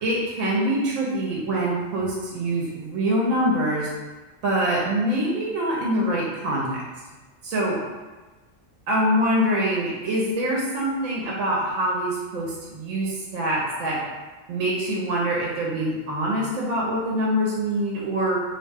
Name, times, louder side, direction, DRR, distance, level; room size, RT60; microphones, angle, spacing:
voice 1, 0.0-3.9 4.4-6.8 7.4-7.8 8.9-14.0 14.5-18.4, right 1 dB, 75° right, -4 dB, 0.9 m, -24 dB
2.6 x 2.2 x 3.3 m, 1.2 s
omnidirectional pair, 1.4 m